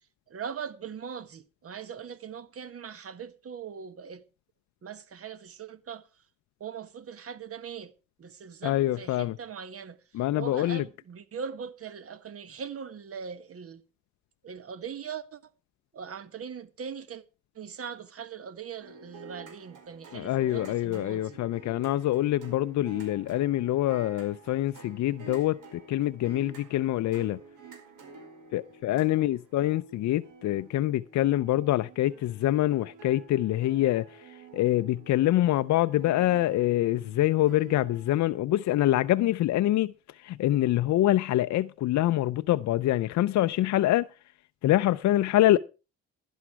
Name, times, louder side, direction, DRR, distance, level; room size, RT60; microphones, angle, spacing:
voice 1, 0.3-4.2 4.8-6.1 6.6-7.9 8.2-10.0 10.4-13.8 14.4-15.4 15.9-17.2 17.5-21.4, right 7 dB, 50° right, 1.4 m, -40 dB
voice 2, 8.6-9.4 10.1-10.8 20.1-27.4 28.5-44.1 44.6-45.6, left 14 dB, 70° left, 0.5 m, -25 dB
sound 1, 18.8-38.1, right 4 dB, 80° right, 4.9 m, -49 dB
11.5 x 11.0 x 4.7 m
cardioid pair, 90°, 30 cm